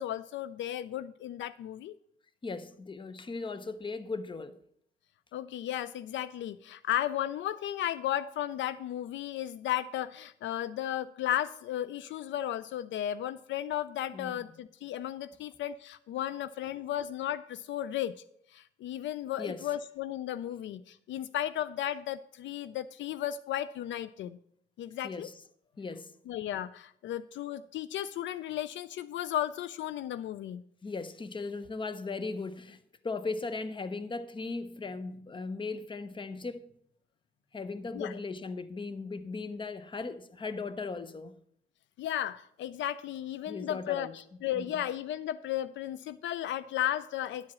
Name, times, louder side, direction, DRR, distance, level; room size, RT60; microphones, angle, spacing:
voice 1, 0.0-2.0 5.3-18.1 18.5-24.4 24.8-25.3 26.3-30.6 37.9-38.2 42.0-47.5, left 11 dB, 70° left, 0.4 m, -34 dB
voice 2, 2.4-4.6 14.1-14.4 19.4-19.7 25.0-25.3 25.8-26.1 30.8-32.8 33.0-36.7 37.5-41.4 43.5-44.1 44.5-44.8, left 3 dB, 25° left, 0.7 m, -38 dB
10.5 x 4.8 x 7.4 m
cardioid pair, 90°, 20 cm